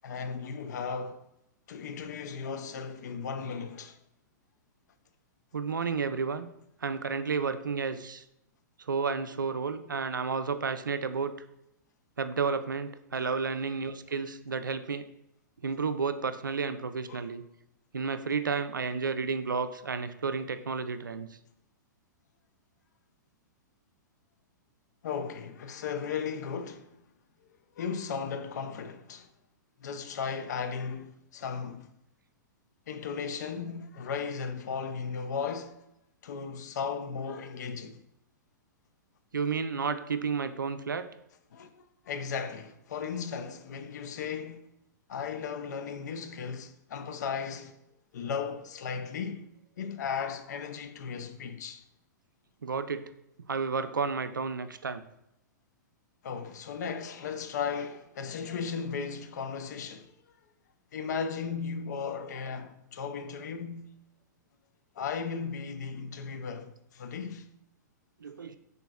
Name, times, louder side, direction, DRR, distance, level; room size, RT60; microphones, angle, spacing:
voice 1, 0.0-1.2 1.7-4.0 13.2-13.4 17.1-17.3 25.0-27.0 27.8-29.3 29.8-31.9 32.9-35.8 36.2-38.0 41.5-44.7 45.1-47.7 48.1-49.5 49.8-51.8 56.2-60.1 60.9-63.9 65.0-67.5, left 6 dB, 65° left, 0.5 m, -36 dB
voice 2, 5.5-6.5 6.8-8.2 8.9-11.3 12.2-15.1 15.6-17.4 17.9-21.3 39.3-41.1 52.6-53.0 53.5-55.0 68.2-68.6, right 5 dB, 90° right, 0.4 m, -31 dB
5.6 x 3.8 x 2.4 m
hypercardioid pair, 110°, 10 cm